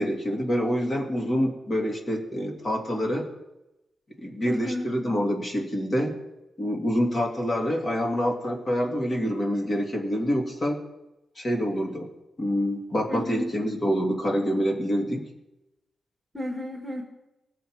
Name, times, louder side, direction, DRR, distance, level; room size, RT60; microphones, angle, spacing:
voice 1, 0.0-3.3 4.2-6.2 6.6-10.8 11.4-12.1 12.4-15.2, equal, 30° left, 1 dB, 2.1 m, -26 dB
voice 2, 4.4-4.9 13.1-13.5 16.3-17.0, left 1 dB, ahead, 0 dB, 1.7 m, -32 dB
19.5 x 7.3 x 4.7 m, 0.95 s
wide cardioid pair, 155°, 0 cm